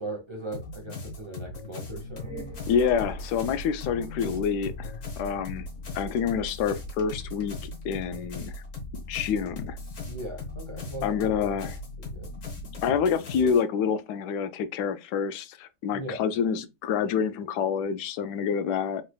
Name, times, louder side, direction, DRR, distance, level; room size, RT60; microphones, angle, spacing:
voice 1, 0.0-2.4 10.0-11.6 12.0-12.3 15.9-16.2, right 1 dB, 25° right, 0.7 m, -38 dB
sound 1, 0.5-13.6, left 3 dB, 50° left, 1.3 m, -40 dB
sound 2, 1.9-13.0, left 1 dB, 15° left, 1.3 m, -42 dB
voice 2, 2.7-5.7 5.9-8.5 9.1-9.8 11.0-11.7 12.8-19.0, left 7 dB, 75° left, 1.1 m, -27 dB
3.9 x 3.1 x 2.2 m
omnidirectional pair, 1.9 m